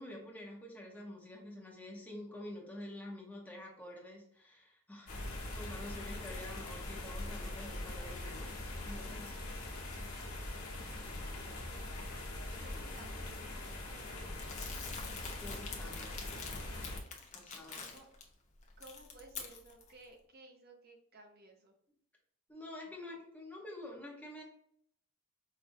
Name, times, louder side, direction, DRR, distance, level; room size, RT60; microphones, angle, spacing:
voice 1, 0.0-5.2 5.5-8.6 8.8-9.3 12.7-12.9 15.4-16.2 17.3-17.9 22.5-24.4, left 1 dB, 5° left, -2 dB, 0.8 m, -48 dB
sound 1, 5.1-17.0, left 1 dB, 90° left, 1.1 m, -42 dB
voice 2, 10.8-11.7 12.5-14.6 17.7-18.1 18.8-21.7, right 2 dB, 45° right, 2 dB, 0.7 m, -58 dB
Crumpling crinkling, 14.4-18.2 18.6-19.9, left 5 dB, 35° left, 0.7 m, -46 dB
5.0 x 2.6 x 2.6 m, 0.67 s
head